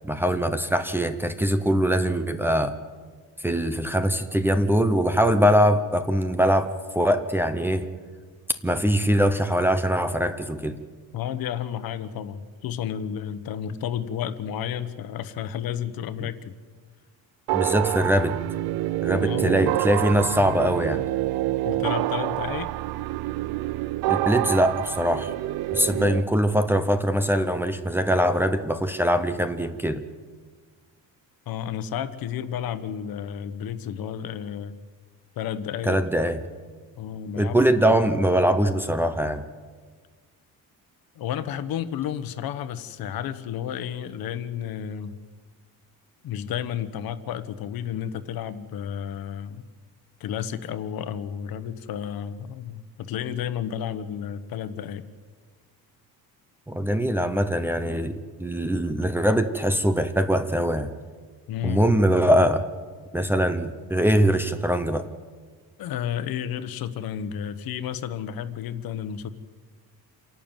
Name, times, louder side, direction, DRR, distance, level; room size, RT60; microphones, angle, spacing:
voice 1, 0.0-2.8 3.4-7.9 8.6-10.8 17.5-18.4 19.0-21.0 24.1-25.3 25.7-30.0 35.8-36.4 37.4-39.4 56.7-60.9 61.6-62.6 63.1-65.1, equal, 5° right, 9 dB, 0.8 m, -22 dB
voice 2, 11.1-16.5 19.2-19.6 21.6-22.7 25.9-26.2 31.5-34.8 35.3-36.0 37.0-37.6 37.8-38.0 41.1-45.1 46.2-49.6 50.2-55.0 61.5-61.8 65.8-69.3, left 9 dB, 65° left, 12 dB, 1.2 m, -32 dB
sound 1, 17.5-26.2, right 16 dB, 80° right, 0.6 m, -27 dB
28.0 x 11.5 x 9.0 m, 1.5 s
cardioid pair, 180°, 38 cm